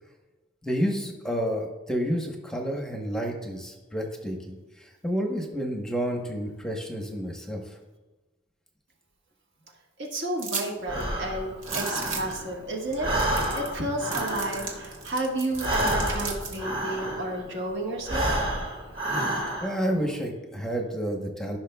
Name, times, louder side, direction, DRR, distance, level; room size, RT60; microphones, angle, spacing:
voice 1, 0.6-7.8 19.2-21.6, equal, 5° left, 1 dB, 0.9 m, -30 dB
voice 2, 10.0-13.1 13.5-18.3, right 1 dB, 55° right, -1 dB, 1.5 m, -31 dB
sound 1, 10.4-10.7 11.0-11.1 11.6-12.4 12.9-13.0 13.2-13.8 14.1-16.6, right 5 dB, 70° right, 1.5 m, -35 dB
Breathing, 10.8-12.6 12.9-17.5 18.0-19.9, right 1 dB, 25° right, 1.7 m, -29 dB
14.5 x 6.0 x 2.3 m, 1.2 s
head